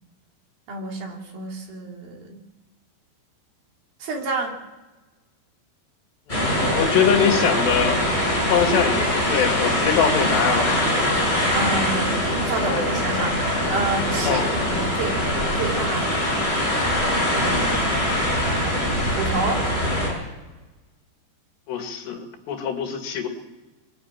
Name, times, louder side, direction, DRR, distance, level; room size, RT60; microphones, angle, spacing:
voice 1, 0.7-2.5 4.0-4.5 11.5-12.1 12.4-13.3 13.7-15.2 15.5-16.2 17.4-17.6 18.4-19.7, right 3 dB, 60° right, 1 dB, 4.4 m, -29 dB
voice 2, 6.3-8.0 8.5-10.9 12.6-12.9 14.2-14.5 17.3-17.8 21.7-23.3, left 7 dB, 75° left, 4 dB, 4.1 m, -23 dB
sound 1, 6.3-20.1, left 1 dB, 10° left, 7.9 m, -23 dB
22.5 x 14.0 x 8.9 m, 1.1 s
omnidirectional pair, 5.0 m